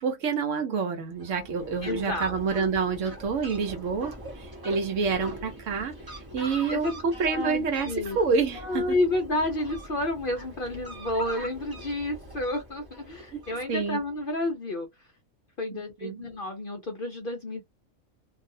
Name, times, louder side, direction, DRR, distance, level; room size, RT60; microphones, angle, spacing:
voice 1, 0.0-4.1 4.6-9.0 13.3-13.4 13.7-14.0 15.7-16.2, right 5 dB, 65° right, 1.0 m, -28 dB
Fowl, 1.1-14.1, equal, 20° right, 0.9 m, -43 dB
voice 2, 1.8-2.7 6.7-7.0 7.3-8.2 8.6-14.9 15.6-17.6, left 2 dB, 50° left, 0.7 m, -30 dB
2.6 x 2.3 x 2.6 m
omnidirectional pair, 1.4 m